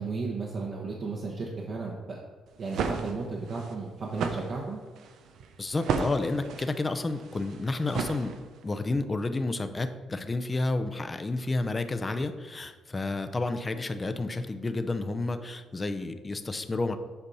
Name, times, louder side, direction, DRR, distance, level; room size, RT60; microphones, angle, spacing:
voice 1, 0.0-2.2 2.6-4.8, right 4 dB, 55° right, -2 dB, 1.2 m, -34 dB
sound 1, 2.5-8.8, right 5 dB, 75° right, 0.6 m, -34 dB
voice 2, 5.6-8.3 8.6-17.0, left 2 dB, 25° left, 8 dB, 0.6 m, -30 dB
8.1 x 5.2 x 4.2 m, 1.4 s
cardioid pair, 90°, 0 cm